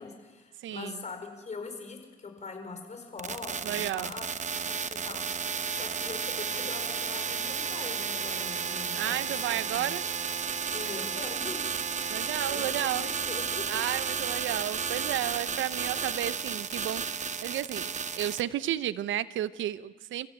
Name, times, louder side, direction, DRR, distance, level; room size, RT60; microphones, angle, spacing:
voice 1, 0.0-4.3 4.6-9.9 10.7-11.7 12.4-13.6 14.0-14.3 15.4-15.5, left 4 dB, 35° left, 5 dB, 5.1 m, -42 dB
voice 2, 0.6-1.0 3.6-4.1 8.9-10.0 12.1-13.1 13.7-17.9 18.1-20.3, right 12 dB, 75° right, 15 dB, 0.8 m, -32 dB
sound 1, 3.2-18.4, right 6 dB, 35° right, 1.0 m, -33 dB
29.5 x 15.0 x 8.6 m, 1.3 s
cardioid pair, 90°, 20 cm